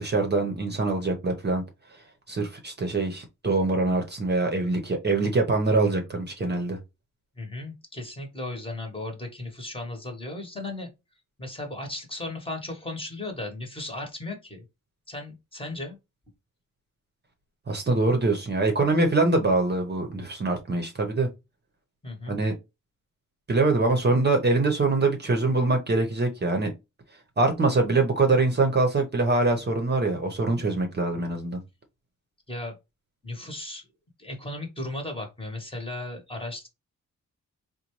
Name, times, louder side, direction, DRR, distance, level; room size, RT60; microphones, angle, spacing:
voice 1, 0.0-1.6 2.3-6.8 17.7-21.3 22.3-22.5 23.5-26.7 27.4-31.6, right 3 dB, 30° right, 0.7 m, -24 dB
voice 2, 7.4-10.9 11.4-14.6 15.1-16.0 22.0-22.4 32.5-32.8 33.2-33.9 34.2-36.7, left 2 dB, 15° left, 1.0 m, -36 dB
4.0 x 2.2 x 3.0 m
wide cardioid pair, 150°, 32 cm